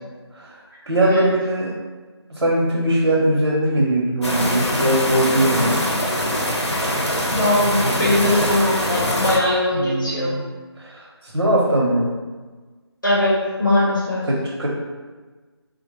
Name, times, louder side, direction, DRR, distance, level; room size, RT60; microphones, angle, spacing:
voice 1, 0.3-1.7 2.3-5.8 9.7-10.4 10.8-12.1 14.2-14.7, right 1 dB, 80° right, -4 dB, 0.7 m, -21 dB
sound 1, 4.2-9.4, equal, 85° left, 0.8 m, -22 dB
voice 2, 7.3-10.3 13.0-13.3 13.6-14.2, left 1 dB, 45° left, -7 dB, 0.8 m, -20 dB
3.8 x 2.1 x 3.0 m, 1.3 s
figure-of-eight pair, 180°, 14 cm